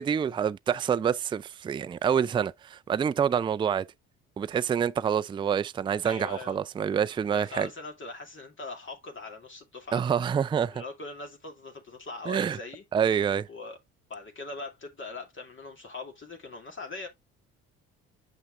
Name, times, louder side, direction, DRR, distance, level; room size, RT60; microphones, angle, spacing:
voice 1, 0.0-3.9 4.4-7.7 9.9-10.8 12.3-12.6 12.9-13.5, right 8 dB, 15° right, 0.3 m, -27 dB
voice 2, 6.0-6.6 7.3-10.0 10.7-12.8 13.5-13.8 14.1-17.1, left 3 dB, 40° left, 2.4 m, -41 dB
8.0 x 5.8 x 2.4 m
hypercardioid pair, 60°, 31 cm